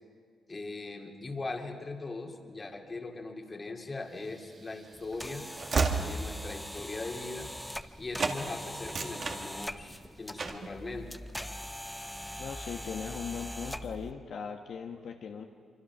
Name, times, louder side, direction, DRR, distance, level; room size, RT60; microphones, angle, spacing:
voice 1, 0.5-7.5 8.0-11.1, left 3 dB, 30° left, 3 dB, 2.4 m, -40 dB
Train / Slam, 4.3-8.4 8.8-10.0 10.4-10.7, right 4 dB, 45° right, 1.9 m, -33 dB
sound 1, 4.9-14.1, equal, 5° left, 0.7 m, -42 dB
voice 2, 12.4-15.4, left 6 dB, 70° left, 3 dB, 1.2 m, -39 dB
25.0 x 25.0 x 5.9 m, 2.1 s
cardioid pair, 90°, 0 cm